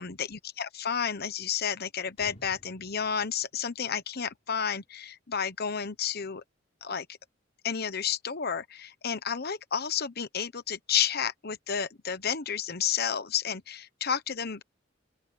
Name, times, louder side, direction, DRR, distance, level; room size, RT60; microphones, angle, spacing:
voice 1, 0.0-6.4 6.8-7.1 7.6-14.6, left 7 dB, 55° left, 1.1 m, -31 dB
sound 1, 2.2-4.7, equal, 35° left, 4.7 m, -55 dB
open air
head